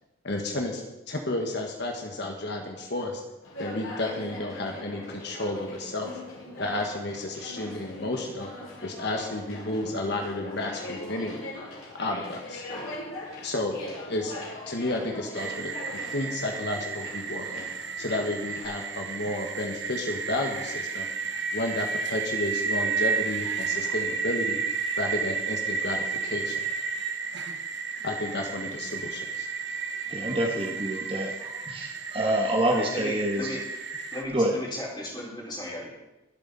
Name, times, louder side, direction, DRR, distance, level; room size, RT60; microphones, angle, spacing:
voice 1, 0.2-3.2 3.6-6.2 6.6-8.5 8.8-11.5 11.9-12.7 13.4-13.8 14.1-14.3 14.7-17.7 18.0-21.1 21.5-24.6 25.0-26.7 28.0-29.5, left 2 dB, 55° left, 2 dB, 1.5 m, -32 dB
Conversation, 3.4-18.6, left 1 dB, 90° left, 5.7 m, -41 dB
sound 1, 15.4-34.2, right 5 dB, 55° right, 1.1 m, -32 dB
voice 2, 30.1-31.3 31.7-33.5 34.3-34.6, right 1 dB, 25° right, 1 dB, 1.6 m, -26 dB
voice 3, 32.6-33.6 34.1-35.9, left 1 dB, 20° left, -4 dB, 4.3 m, -36 dB
23.0 x 8.3 x 4.2 m, 0.99 s
head